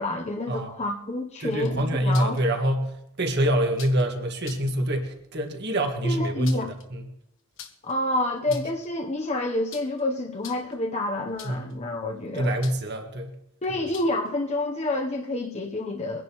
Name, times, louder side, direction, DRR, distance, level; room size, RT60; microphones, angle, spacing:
voice 1, 0.0-2.4 6.0-6.7 7.8-12.5 13.6-16.2, left 1 dB, 30° left, 2 dB, 0.8 m, -28 dB
voice 2, 1.4-7.0 8.5-8.6 11.4-11.8 12.3-13.3, right 1 dB, 50° right, 4 dB, 1.7 m, -26 dB
sound 1, 1.5-2.4 3.7-4.1 4.4-4.7 6.2-6.9 7.6-7.9 8.4-8.9 9.7-10.0 10.4-10.8 11.4-11.7 12.6-13.0 13.9-14.3, left 8 dB, 60° left, 1.3 m, -44 dB
23.5 x 10.5 x 3.0 m, 0.80 s
head